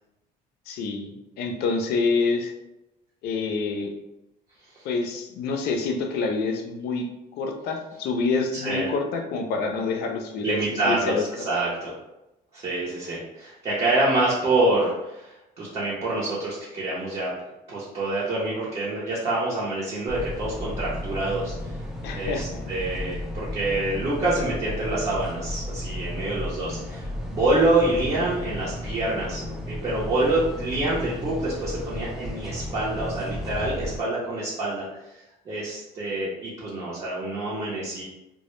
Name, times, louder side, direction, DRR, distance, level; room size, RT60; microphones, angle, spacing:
voice 1, 0.7-2.5 3.2-3.9 4.8-7.1 7.4-10.6 10.8-11.3 22.0-22.6, left 4 dB, 75° left, 4 dB, 0.4 m, -27 dB
voice 2, 8.5-8.8 10.4-11.9 12.5-17.3 17.7-21.8 22.1-34.8 35.5-38.0, right 2 dB, 35° right, -7 dB, 0.7 m, -26 dB
sound 1, 20.1-34.0, left 1 dB, ahead, 0.5 m, -34 dB
2.1 x 2.0 x 3.0 m, 0.94 s
cardioid pair, 110°, 17 cm